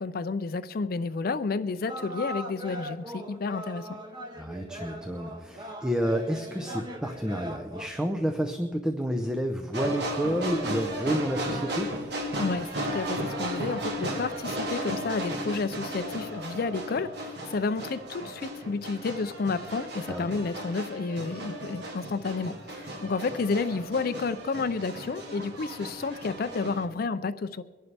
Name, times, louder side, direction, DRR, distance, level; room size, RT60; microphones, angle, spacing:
voice 1, 0.0-3.9 12.4-27.6, left 4 dB, 50° left, 12 dB, 0.4 m, -31 dB
sound 1, 1.9-7.9, equal, 25° right, 1.4 m, -40 dB
voice 2, 4.3-11.9 20.1-20.3, equal, 5° right, 4 dB, 0.6 m, -30 dB
sound 2, 9.7-26.8, right 1 dB, 60° right, 1.6 m, -35 dB
24.0 x 11.0 x 3.4 m, 1.5 s
head